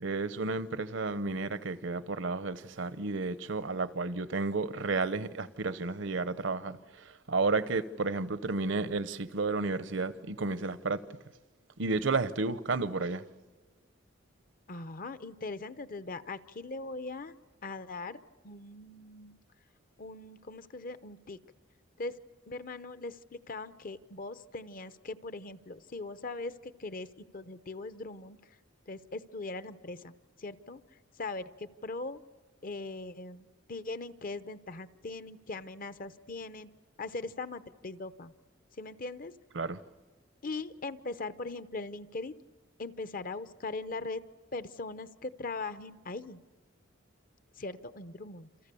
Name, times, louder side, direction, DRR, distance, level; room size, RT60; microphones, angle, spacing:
voice 1, 0.0-11.0 11.8-13.2 39.6-39.8, right 3 dB, 70° right, 0.8 m, -32 dB
voice 2, 14.7-17.3 17.6-19.4 20.0-21.4 22.0-22.2 22.5-28.6 28.9-32.2 32.6-36.7 37.0-38.3 38.7-39.3 40.4-42.3 42.8-44.2 44.5-46.4 47.6-48.5, left 3 dB, 45° left, 0.8 m, -40 dB
28.5 x 27.5 x 6.9 m
head